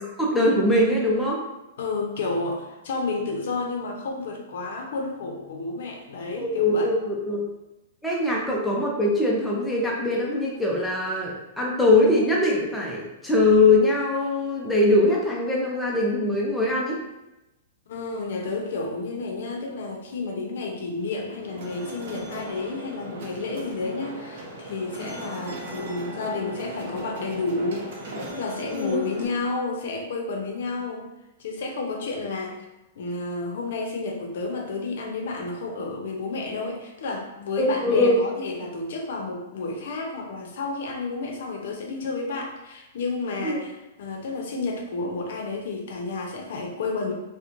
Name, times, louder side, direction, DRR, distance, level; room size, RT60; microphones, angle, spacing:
voice 1, 0.2-1.4 6.4-7.5 8.0-17.0 28.7-29.0 37.6-38.2 43.4-43.6, left 2 dB, 5° left, -4 dB, 0.4 m, -22 dB
voice 2, 1.8-6.9 17.9-31.1 31.4-32.6 33.0-47.1, left 3 dB, 65° left, 1 dB, 0.6 m, -31 dB
sound 1, 21.0-29.3, right 1 dB, 55° right, 0.6 m, -37 dB
2.9 x 2.1 x 2.5 m, 0.96 s
supercardioid pair, 170°, 0 cm